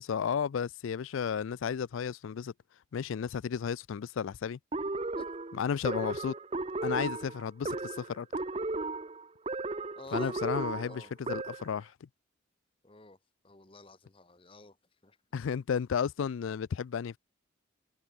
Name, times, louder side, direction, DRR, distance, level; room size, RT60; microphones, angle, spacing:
voice 1, 0.0-2.5 2.9-4.6 5.5-6.4 6.8-8.3 10.1-12.1 15.3-17.2, left 7 dB, 80° left, 0.4 m, -33 dB
sound 1, 4.7-11.8, right 2 dB, 30° right, 0.7 m, -35 dB
voice 2, 10.0-11.1 12.8-13.2 13.4-14.8 15.0-15.2, left 2 dB, 25° left, 1.3 m, -50 dB
head